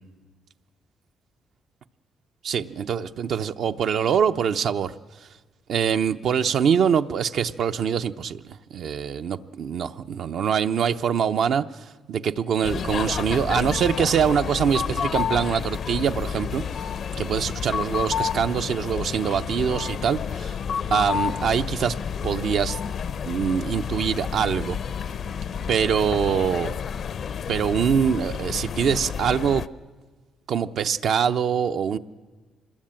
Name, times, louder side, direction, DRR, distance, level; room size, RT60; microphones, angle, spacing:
voice 1, 2.4-4.9 5.7-16.6 17.2-20.6 20.9-22.0 22.2-22.8 23.2-24.8 25.7-26.8 27.5-29.6 30.5-32.0, right 7 dB, 65° right, 8 dB, 0.8 m, -24 dB
sound 1, 12.6-29.7, left 7 dB, 60° left, 0.7 m, -30 dB
25.5 x 21.0 x 8.9 m, 1.3 s
cardioid pair, 90°, 0 cm